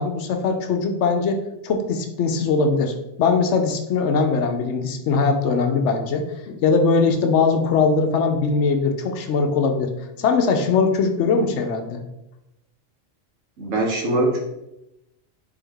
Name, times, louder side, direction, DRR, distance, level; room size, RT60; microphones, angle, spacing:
voice 1, 0.0-1.4 1.6-9.9 10.2-12.0, left 4 dB, 70° left, 5 dB, 0.9 m, -21 dB
voice 2, 13.6-14.4, right 1 dB, 80° right, 0 dB, 1.4 m, -22 dB
4.1 x 3.6 x 3.4 m, 0.89 s
omnidirectional pair, 1.3 m